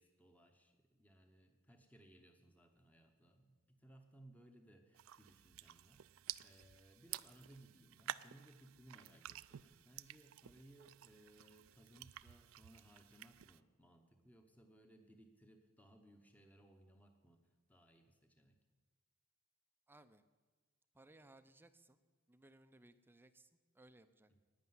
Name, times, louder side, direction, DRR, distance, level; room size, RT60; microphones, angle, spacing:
voice 1, 0.0-18.6, right 1 dB, 5° left, 5 dB, 0.9 m, -64 dB
sound 1, 4.9-13.6, right 13 dB, 70° right, 0.4 m, -52 dB
voice 2, 19.9-20.2 20.9-22.0 22.3-24.4, right 2 dB, 10° right, 11 dB, 0.5 m, -64 dB
11.5 x 9.5 x 9.4 m, 1.4 s
head